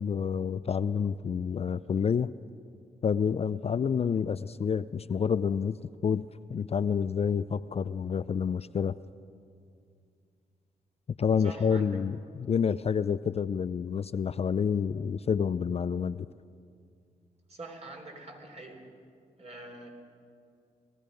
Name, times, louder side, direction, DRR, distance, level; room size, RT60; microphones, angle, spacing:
voice 1, 0.0-2.3 3.0-5.8 6.0-6.2 6.5-8.9 11.2-16.3, left 6 dB, 40° left, 15 dB, 0.4 m, -28 dB
voice 2, 11.4-12.0 17.5-18.8 19.4-19.9, right 2 dB, 40° right, 2 dB, 3.5 m, -44 dB
19.0 x 14.0 x 5.2 m, 2.3 s
supercardioid pair, 50°, 16 cm